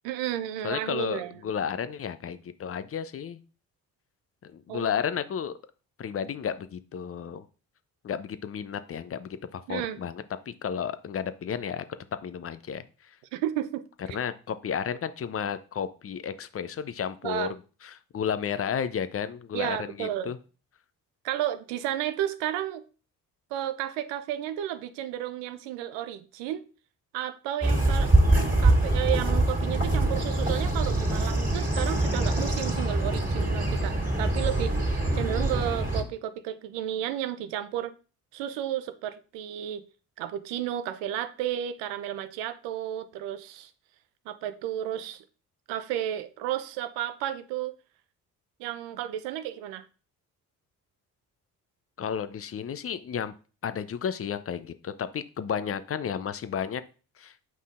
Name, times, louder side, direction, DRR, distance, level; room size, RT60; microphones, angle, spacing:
voice 1, 0.0-1.4 4.7-4.9 9.7-10.0 13.3-14.2 17.2-17.5 19.5-20.3 21.2-22.8 23.5-26.6 27.1-28.1 28.6-34.7 35.1-37.9 38.3-39.8 40.2-43.7 44.3-45.2 45.7-47.7 48.6-49.9, right 11 dB, 65° right, 11 dB, 0.8 m, -32 dB
voice 2, 0.6-3.4 4.5-5.6 6.0-7.4 8.0-11.8 12.2-12.8 14.1-17.5 17.8-20.4 52.0-53.3 53.6-56.8 57.2-57.3, left 7 dB, 30° left, 13 dB, 0.6 m, -32 dB
sound 1, 27.6-36.0, right 2 dB, 20° right, 2.3 m, -24 dB
8.4 x 5.4 x 2.5 m, 0.35 s
figure-of-eight pair, 45°, 46 cm